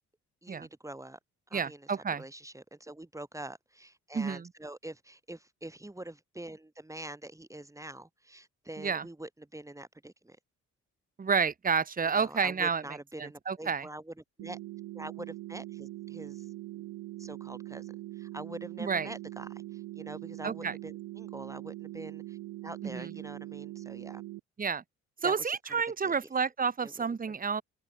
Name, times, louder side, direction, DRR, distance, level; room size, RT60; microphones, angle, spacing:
voice 1, 0.4-1.2 1.5-10.4 12.0-14.6 14.9-16.5 16.7-16.9 17.2-22.4 22.6-24.2 25.2-26.2 26.8-27.3, right 1 dB, 10° right, 3.7 m, -45 dB
voice 2, 1.5-2.2 4.1-4.5 8.8-9.1 11.2-12.8 13.2-13.9 18.8-19.1 20.4-20.7 22.8-23.1 24.6-24.8 25.2-27.6, right 5 dB, 30° right, 1.4 m, -30 dB
sound 1, 14.4-24.4, right 17 dB, 90° right, 1.7 m, -42 dB
open air
cardioid pair, 90°, 30 cm